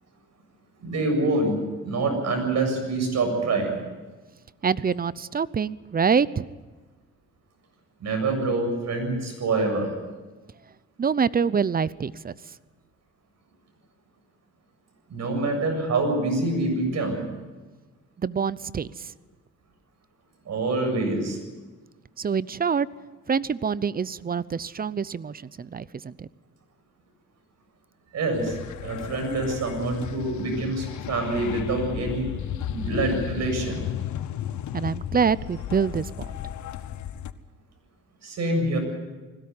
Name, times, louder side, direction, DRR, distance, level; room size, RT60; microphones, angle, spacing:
voice 1, 0.8-1.6 1.8-3.7 8.0-9.9 15.1-17.2 20.5-21.4 28.1-28.6 28.8-32.3 32.7-33.8 38.2-38.8, right 2 dB, 60° right, 4 dB, 7.6 m, -26 dB
voice 2, 4.6-6.5 11.0-12.3 18.2-19.1 22.2-22.9 23.3-26.3 34.7-36.1, right 6 dB, 30° right, 19 dB, 0.7 m, -25 dB
sound 1, 28.3-37.3, left 11 dB, 75° left, 1.1 m, -34 dB
21.0 x 17.0 x 9.6 m, 1.3 s
cardioid pair, 90°, 30 cm